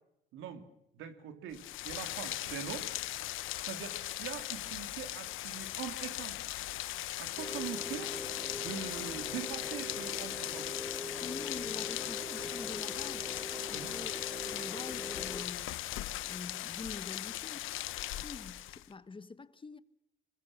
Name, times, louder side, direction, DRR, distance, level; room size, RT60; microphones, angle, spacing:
voice 1, 0.3-0.6 0.9-3.0 3.6-6.4 7.2-8.1 8.5-10.7 13.7-13.9, right 8 dB, 90° right, 2.8 m, -43 dB
Rain, 1.5-18.9, left 15 dB, 90° left, 1.0 m, -39 dB
sound 1, 7.4-15.5, equal, ahead, 2.9 m, -43 dB
voice 2, 11.2-13.3 13.7-15.7 16.2-17.7 18.1-19.8, left 4 dB, 25° left, 1.2 m, -46 dB
25.0 x 21.0 x 7.2 m
cardioid pair, 90°, 20 cm